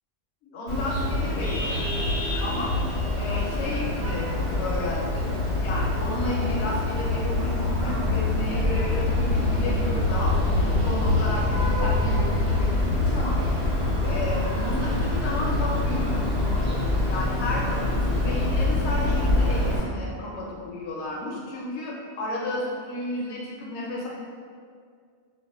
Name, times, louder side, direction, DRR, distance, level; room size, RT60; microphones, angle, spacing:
voice 1, 0.4-2.0 2.4-2.7 3.1-4.3 4.6-5.3 5.6-13.4 14.0-16.3 17.1-24.1, left 1 dB, 85° left, -3 dB, 0.9 m, -32 dB
Vehicle horn car horn honking, 0.7-19.8, left 2 dB, 75° right, 1.2 m, -25 dB
2.4 x 2.3 x 2.3 m, 2.1 s
omnidirectional pair, 1.1 m